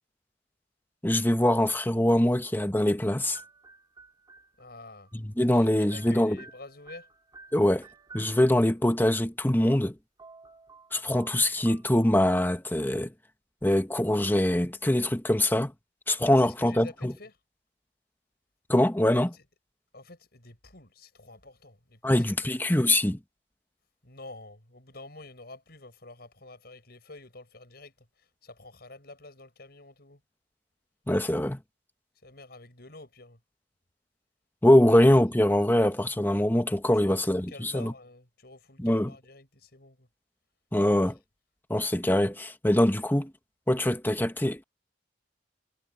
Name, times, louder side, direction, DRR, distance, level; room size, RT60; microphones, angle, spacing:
voice 1, 1.0-3.4 5.1-6.4 7.5-7.9 8.1-10.0 10.9-13.1 13.6-15.7 16.1-17.1 18.7-19.3 22.0-23.2 31.1-31.6 34.6-37.9 38.8-39.1 40.7-41.2 41.7-43.3 43.7-44.6, left 1 dB, 10° left, 1.3 m, -23 dB
sound 1, 3.3-5.1 5.4-9.0 9.9-10.0 10.2-12.3, right 4 dB, 25° right, 3.5 m, -53 dB
voice 2, 4.6-5.1 5.4-7.1 16.4-17.3 19.3-19.4 19.9-22.2 24.0-30.2 32.2-33.4 36.9-40.1, left 2 dB, 60° left, 7.0 m, -49 dB
head